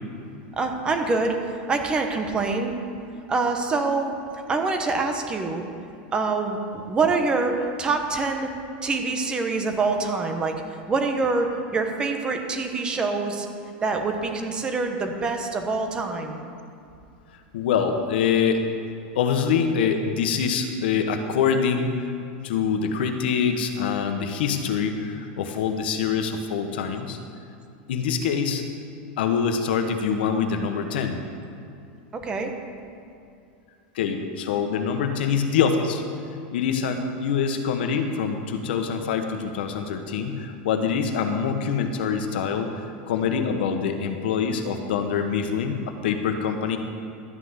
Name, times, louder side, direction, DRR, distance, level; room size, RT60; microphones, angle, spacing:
voice 1, 0.5-2.7 3.3-4.1 4.5-5.6 6.1-8.5 8.8-10.6 10.9-13.5 13.8-16.4 32.1-32.5, right 3 dB, 15° right, 4 dB, 1.0 m, -25 dB
voice 2, 17.5-18.6 19.1-22.1 22.4-27.2 27.9-28.6 29.2-31.2 33.9-36.0 36.5-42.7 43.1-46.8, left 6 dB, 80° left, 6 dB, 1.2 m, -25 dB
12.5 x 5.9 x 8.1 m, 2.5 s
supercardioid pair, 160°, 5 cm